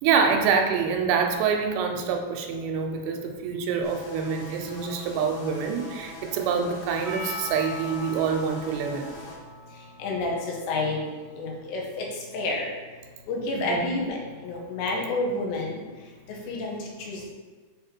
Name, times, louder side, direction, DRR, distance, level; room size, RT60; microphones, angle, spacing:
voice 1, 0.0-9.2 13.5-13.9, right 6 dB, 85° right, 4 dB, 2.8 m, -26 dB
sound 1, 3.8-9.4, left 2 dB, 60° left, 3.5 m, -43 dB
Percussion, 7.0-12.0, left 2 dB, 50° right, 1.3 m, -41 dB
voice 2, 10.0-11.0 11.4-12.1 12.3-12.7 13.3-14.2 14.4-15.8 16.5-16.8 17.1-17.3, left 2 dB, 85° left, -1 dB, 3.4 m, -29 dB
7.6 x 3.8 x 4.4 m, 1.4 s
omnidirectional pair, 4.9 m